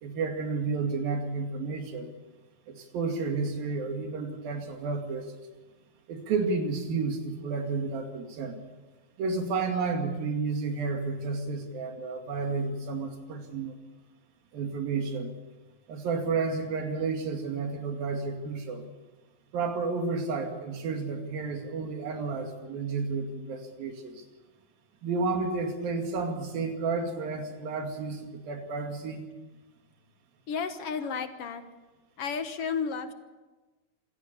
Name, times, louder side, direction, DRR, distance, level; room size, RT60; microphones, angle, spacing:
voice 1, 0.0-2.1 2.7-5.3 6.1-8.6 9.2-13.7 14.5-15.3 15.9-18.8 19.5-24.2 25.0-29.2, right 4 dB, 80° right, 4 dB, 4.1 m, -31 dB
voice 2, 30.5-31.6 32.2-33.1, left 6 dB, 60° left, 8 dB, 1.8 m, -32 dB
26.5 x 17.0 x 6.9 m, 1.2 s
omnidirectional pair, 4.1 m